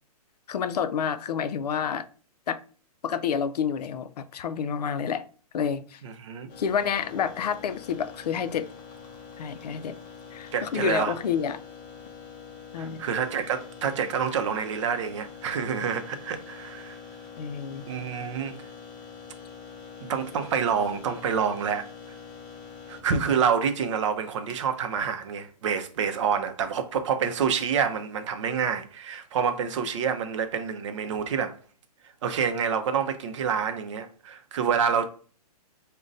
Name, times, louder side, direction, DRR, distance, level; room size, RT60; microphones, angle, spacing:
voice 1, 0.5-2.1 2.5-2.6 3.0-5.3 5.5-6.0 6.6-8.7 9.4-10.0 10.3-11.6 12.7-13.0 17.4-17.8, left 7 dB, 80° left, 0.4 m, -29 dB
voice 2, 6.0-6.5 10.5-11.1 12.8-17.0 17.9-18.6 20.0-22.2 22.9-31.6 32.2-35.1, right 7 dB, 50° right, 0.6 m, -27 dB
sound 1, 6.5-26.1, left 6 dB, 30° left, 0.7 m, -45 dB
5.1 x 2.2 x 2.5 m
hypercardioid pair, 155°, 20 cm